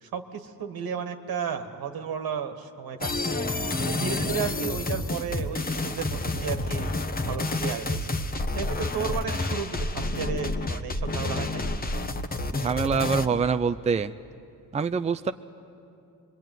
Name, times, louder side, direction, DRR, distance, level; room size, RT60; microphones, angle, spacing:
voice 1, 0.0-3.4 3.8-6.9 7.3-11.7, right 7 dB, 75° right, 7 dB, 1.7 m, -33 dB
sound 1, 3.0-13.3, left 2 dB, 25° left, 1.1 m, -29 dB
voice 2, 12.5-14.1 14.7-15.3, right 5 dB, 20° right, 9 dB, 0.5 m, -25 dB
26.0 x 22.5 x 9.3 m, 2.7 s
cardioid pair, 90°, 36 cm